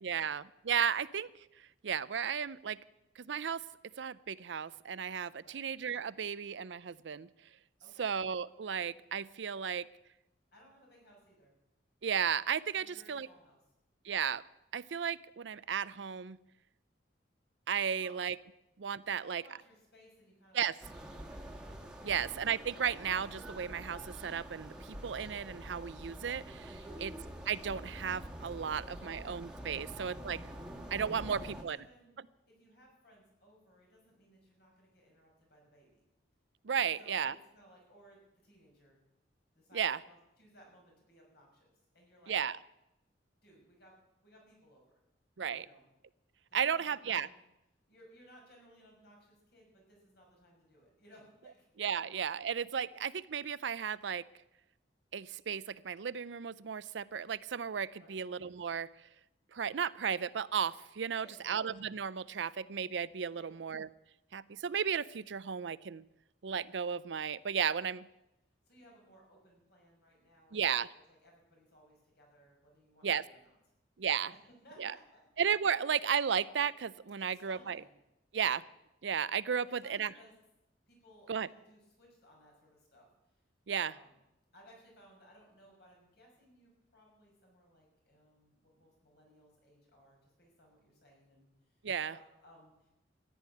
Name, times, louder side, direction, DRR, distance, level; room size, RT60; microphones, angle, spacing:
voice 1, 0.0-1.3 1.8-2.8 3.2-3.6 4.0-7.3 8.0-9.9 12.0-13.3 14.0-14.4 14.7-16.4 17.7-18.4 18.8-19.4 20.5-20.7 22.0-27.1 27.5-30.4 30.9-31.9 36.6-37.3 39.7-40.0 42.3-42.6 45.4-45.7 46.5-47.3 51.8-54.2 55.1-58.9 59.5-63.9 64.3-66.0 66.4-68.1 70.5-70.9 73.0-73.2 74.0-74.3 74.8-74.9 75.4-77.8 78.3-78.6 79.0-80.1 81.3-81.5 83.7-83.9 91.8-92.1, right 7 dB, 85° right, 18 dB, 0.5 m, -34 dB
voice 2, 7.8-8.1 10.5-11.5 12.7-13.6 18.0-18.1 19.0-20.7 21.1-21.7 22.0-22.2 26.8-27.1 29.0-29.1 29.7-30.0 31.1-32.2 32.5-36.0 36.8-39.0 39.5-42.4 43.4-43.9 44.2-45.0 45.5-45.8 46.5-47.4 47.9-51.7 58.0-58.2 61.1-61.6 63.3-63.6 68.7-70.6 70.9-73.5 74.6-75.3 77.2-77.9 79.5-80.3 80.9-83.4 83.8-84.1 84.5-91.5 92.1-92.9, equal, 60° left, 0 dB, 6.0 m, -61 dB
sound 1, 20.8-31.6, right 1 dB, 5° right, 1.6 m, -46 dB
14.0 x 11.0 x 8.6 m, 0.91 s
head